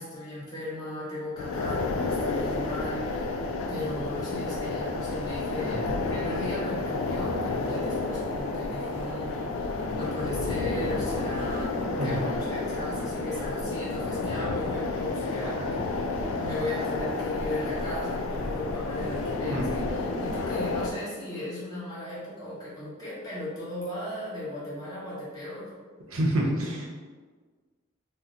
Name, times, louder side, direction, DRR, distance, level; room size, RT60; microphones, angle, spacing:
voice 1, 0.0-3.4 3.7-25.7, left 1 dB, 20° left, -9 dB, 1.0 m, -37 dB
sound 1, 1.4-20.9, left 3 dB, 75° left, 0.3 m, -31 dB
sound 2, 5.8-20.6, equal, 5° right, 0.4 m, -42 dB
voice 2, 26.1-26.9, right 1 dB, 85° right, -2 dB, 0.7 m, -27 dB
2.8 x 2.0 x 3.6 m, 1.5 s
head